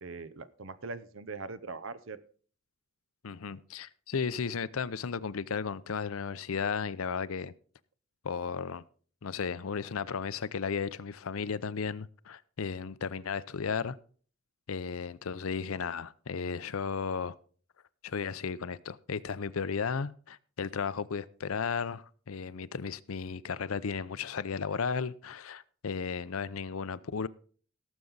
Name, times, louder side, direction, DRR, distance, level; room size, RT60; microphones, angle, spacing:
voice 1, 0.0-2.2, right 4 dB, 70° right, 0.7 m, -41 dB
voice 2, 3.2-7.5 8.2-8.8 9.2-14.0 14.7-17.3 18.0-27.3, left 5 dB, 90° left, 0.6 m, -34 dB
17.5 x 7.2 x 4.0 m
head